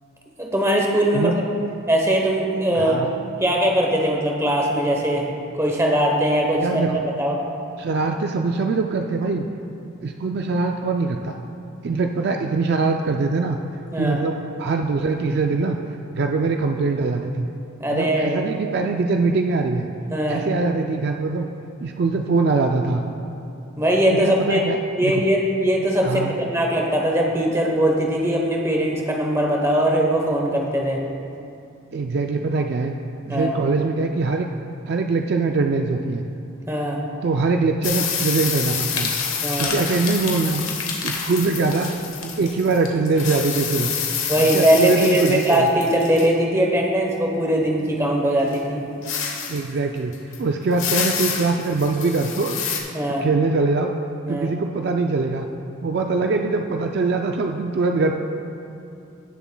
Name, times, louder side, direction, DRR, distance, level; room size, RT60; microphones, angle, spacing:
voice 1, 0.4-1.3 1.9-3.0 3.4-5.3 5.5-6.8 7.2-7.4 13.9-14.2 17.8-18.4 20.1-20.4 23.8-24.6 25.0-31.0 33.3-33.6 36.7-37.0 39.4-39.7 44.3-48.8 52.9-53.3 54.3-54.5, right 1 dB, 15° right, 0 dB, 0.9 m, -20 dB
voice 2, 2.7-3.1 6.6-7.1 7.8-9.5 10.0-11.3 11.8-13.6 14.0-15.8 16.1-17.5 17.9-19.9 20.3-21.5 21.8-23.0 24.1-25.2 26.0-26.4 31.9-32.9 33.3-34.5 34.9-36.2 37.2-39.1 39.6-40.7 41.0-41.9 42.4-43.9 44.4-45.7 49.5-52.6 53.2-53.9 54.3-55.5 55.8-58.1, right 3 dB, 50° right, 3 dB, 0.3 m, -22 dB
sound 1, 37.8-42.8 43.1-46.3 48.5-48.6 49.0-49.7 50.1-50.4 50.7-52.8, left 7 dB, 70° left, 1.1 m, -28 dB
sound 2, 38.7-42.9 43.2-43.4 44.3-44.6, left 4 dB, 90° left, 1.4 m, -32 dB
16.5 x 7.0 x 2.2 m, 2.6 s
head